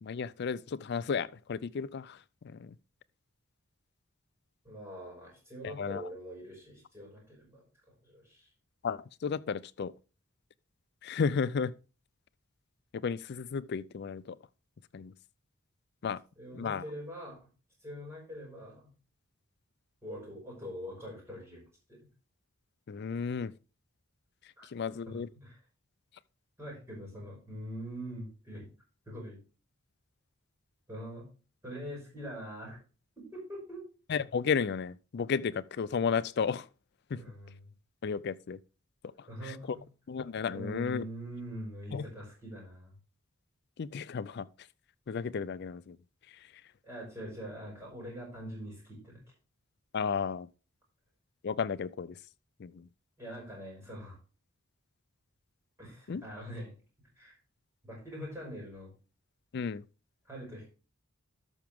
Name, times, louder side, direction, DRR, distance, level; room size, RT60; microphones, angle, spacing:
voice 1, 0.0-2.2 2.4-2.7 5.6-6.0 8.8-9.9 11.0-11.7 12.9-14.4 14.9-15.1 16.0-16.2 16.5-16.8 22.9-23.5 24.7-25.3 34.1-36.7 37.1-37.2 38.0-38.6 39.4-39.6 40.1-41.0 41.9-42.1 43.8-44.5 45.1-46.0 49.9-50.5 51.4-52.2 52.6-52.9 56.1-56.2 59.5-59.8, left 6 dB, 50° left, 0.4 m, -33 dB
voice 2, 4.6-7.6 8.0-8.5 16.4-17.4 17.8-18.9 20.0-21.6 21.9-22.0 24.6-24.7 25.1-25.6 26.6-28.7 29.1-29.4 30.9-31.3 31.6-32.8 33.3-33.8 37.1-37.7 39.3-39.8 40.5-42.9 46.8-49.2 53.2-54.2 55.8-56.7 57.2-57.4 57.8-58.9 60.3-60.7, equal, 10° right, 5.7 m, -43 dB
12.5 x 5.9 x 3.5 m
head